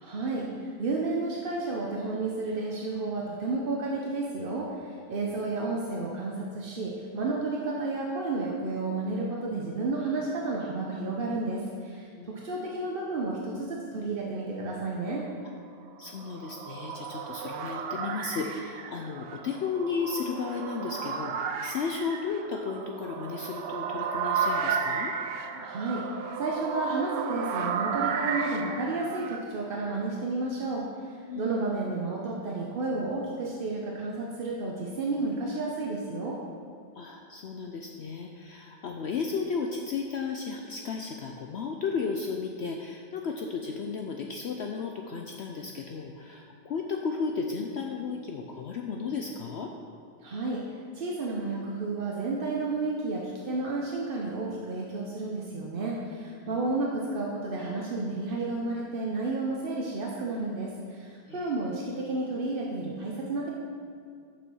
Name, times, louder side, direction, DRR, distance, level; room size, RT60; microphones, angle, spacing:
voice 1, 0.0-15.2 25.5-26.0 26.3-36.4 50.2-50.6 50.9-63.5, right 3 dB, 50° right, -2 dB, 0.7 m, -31 dB
voice 2, 16.0-25.1 31.3-31.7 37.0-49.7 56.5-56.6 61.3-61.5, left 5 dB, 85° left, 2 dB, 0.5 m, -34 dB
sound 1, 16.0-29.4, right 6 dB, 85° right, 1.3 m, -33 dB
7.0 x 6.1 x 6.2 m, 2.3 s
omnidirectional pair, 1.8 m